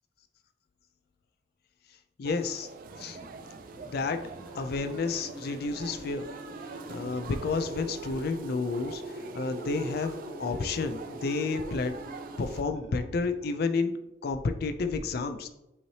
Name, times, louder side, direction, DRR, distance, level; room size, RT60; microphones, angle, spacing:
voice 1, 2.2-2.7 3.0-3.2 3.8-4.2 4.6-6.3 6.9-11.9 12.4-13.9 14.2-15.5, left 4 dB, 60° left, 9 dB, 0.4 m, -31 dB
sound 1, 2.2-12.6, right 4 dB, 50° right, 0.4 m, -46 dB
sound 2, 2.9-14.0, right 1 dB, 75° right, 1.3 m, -43 dB
5.6 x 3.1 x 2.8 m, 0.93 s
head